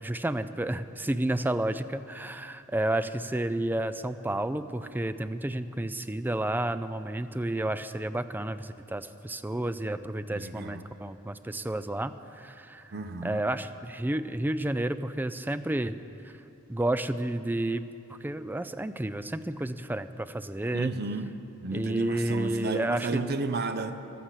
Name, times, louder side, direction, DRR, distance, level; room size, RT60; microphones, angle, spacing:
voice 1, 0.0-12.9 13.2-16.0 16.7-17.8 18.2-20.9 21.7-23.2, right 1 dB, 10° right, 11 dB, 0.4 m, -31 dB
voice 2, 10.3-10.8 12.9-13.4 20.7-21.3 21.6-23.9, right 3 dB, 50° right, 8 dB, 0.7 m, -32 dB
15.0 x 11.5 x 7.3 m, 2.7 s
head